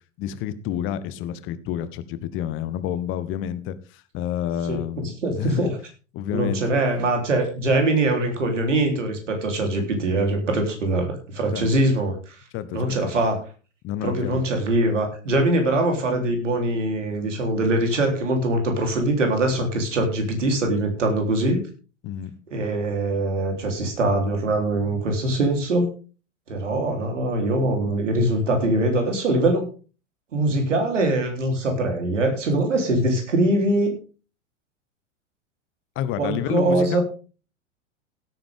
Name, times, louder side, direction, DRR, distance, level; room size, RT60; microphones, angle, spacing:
voice 1, 0.2-5.7 6.1-6.7 11.5-11.7 12.5-13.1 13.8-14.4 17.9-18.0 22.0-22.3 35.9-37.0, left 10 dB, 30° left, 14 dB, 1.2 m, -29 dB
voice 2, 5.2-5.7 6.3-12.4 12.7-13.4 14.0-21.6 22.5-25.9 26.5-29.7 30.3-33.9 36.2-37.0, right 1 dB, 70° right, 3 dB, 3.9 m, -22 dB
16.5 x 9.2 x 3.7 m, 0.37 s
figure-of-eight pair, 90°, 38 cm